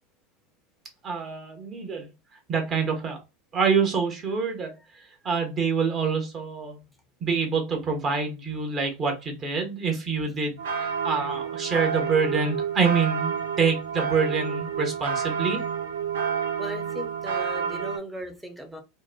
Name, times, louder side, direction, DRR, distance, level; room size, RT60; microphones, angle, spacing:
voice 1, 1.0-2.1 2.5-3.2 3.5-4.7 5.2-6.8 7.2-15.6, right 5 dB, 35° right, 1.0 m, -26 dB
voice 2, 4.9-5.3 16.6-18.8, equal, 5° right, 0.7 m, -38 dB
sound 1, 10.6-18.0, right 7 dB, 75° right, 0.5 m, -29 dB
2.9 x 2.1 x 2.2 m
hypercardioid pair, 85°, 0 cm